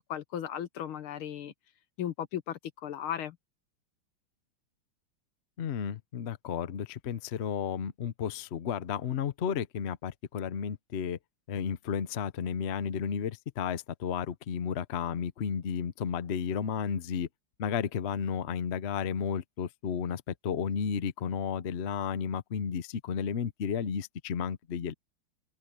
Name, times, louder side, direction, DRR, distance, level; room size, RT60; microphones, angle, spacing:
voice 1, 0.0-1.5 2.0-3.4, left 10 dB, 90° left, 2.0 m, -36 dB
voice 2, 5.6-11.2 11.5-17.3 17.6-24.9, left 7 dB, 55° left, 0.7 m, -33 dB
omnidirectional pair, 2.2 m